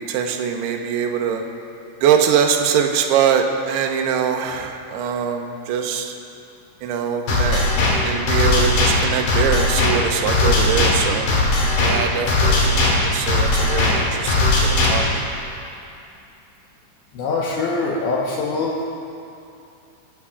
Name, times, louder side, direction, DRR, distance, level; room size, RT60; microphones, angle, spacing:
voice 1, 0.1-1.4 2.0-6.1 6.8-7.7 8.0-11.3 11.8-12.8 13.1-14.5 14.9-15.0, right 7 dB, 75° right, 3 dB, 2.5 m, -22 dB
sound 1, 7.3-15.3, left 2 dB, 50° left, 3.9 m, -18 dB
voice 2, 17.1-18.8, left 3 dB, 75° left, -4 dB, 3.1 m, -23 dB
25.0 x 15.5 x 2.5 m, 2.6 s
omnidirectional pair, 5.7 m